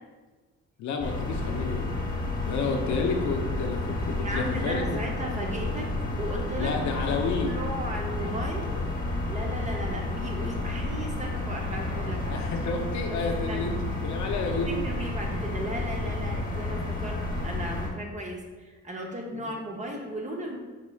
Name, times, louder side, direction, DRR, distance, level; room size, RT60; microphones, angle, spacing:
voice 1, 0.8-2.0 2.4-5.0 6.6-7.5 12.2-14.8 19.3-19.4, left 4 dB, 70° left, 3 dB, 0.5 m, -30 dB
sound 1, 1.0-17.9, left 2 dB, 25° left, 1.0 m, -31 dB
voice 2, 4.2-5.9 6.2-6.8 7.4-8.8 9.3-12.4 13.1-13.2 13.5-13.7 14.4-20.6, equal, 25° right, 1 dB, 0.7 m, -36 dB
4.1 x 3.0 x 2.3 m, 1.3 s
cardioid pair, 90°, 30 cm